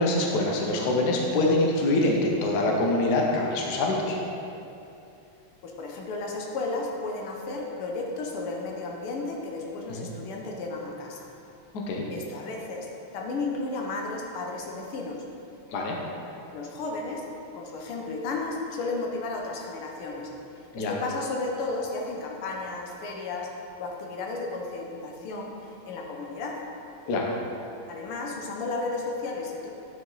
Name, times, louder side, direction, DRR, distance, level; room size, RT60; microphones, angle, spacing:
voice 1, 0.0-4.2 9.9-10.1 11.9-12.1 15.7-16.0 20.7-21.0 27.1-27.3, left 2 dB, 55° left, -1 dB, 1.3 m, -24 dB
voice 2, 5.6-11.3 12.1-15.3 16.5-17.2 17.5-20.3 20.7-23.5 23.8-26.6 27.9-29.7, left 3 dB, 80° left, 0 dB, 1.8 m, -33 dB
9.5 x 5.2 x 3.9 m, 2.7 s
omnidirectional pair, 2.4 m